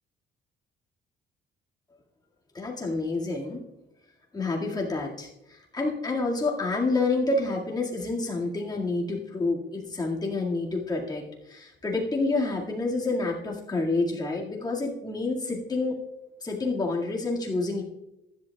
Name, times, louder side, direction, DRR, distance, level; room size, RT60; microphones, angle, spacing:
voice 1, 2.5-3.6 4.3-16.0 16.4-17.8, left 3 dB, 20° left, -2 dB, 2.1 m, -28 dB
15.0 x 11.0 x 2.3 m, 0.90 s
cardioid pair, 130°, 20 cm